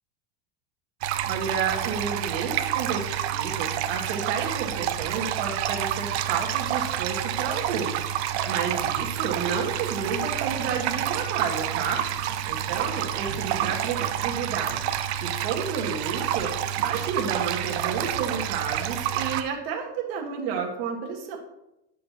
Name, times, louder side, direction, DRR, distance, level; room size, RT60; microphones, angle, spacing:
sound 1, 1.0-19.4, right 10 dB, 85° right, 0.6 m, -28 dB
voice 1, 1.3-12.0 12.5-21.4, right 6 dB, 65° right, 0 dB, 1.5 m, -31 dB
9.5 x 6.6 x 2.8 m, 0.88 s
supercardioid pair, 160°, 32 cm